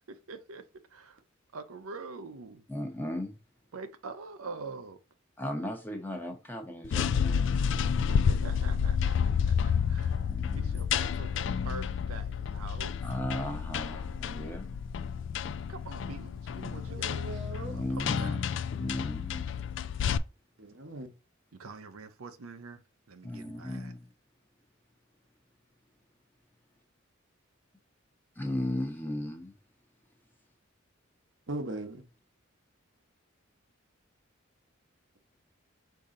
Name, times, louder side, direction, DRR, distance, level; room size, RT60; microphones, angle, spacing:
voice 1, 0.1-0.6 0.9-1.2 1.5-2.6 3.7-5.0 8.2-13.0 15.7-17.2 17.7-18.4 21.5-22.8 23.1-23.9, right 4 dB, 85° right, 0.6 m, -45 dB
voice 2, 2.7-3.4 5.4-7.4 10.3-10.8 13.0-14.8 17.6-18.4 18.8-19.6 23.2-24.1 28.4-29.5, left 1 dB, 10° left, 0.8 m, -36 dB
sound 1, 6.8-20.2, left 7 dB, 60° left, 0.3 m, -30 dB
voice 3, 16.9-17.8 20.6-21.1 31.5-32.0, right 2 dB, 60° right, 0.9 m, -39 dB
5.3 x 2.7 x 3.7 m
head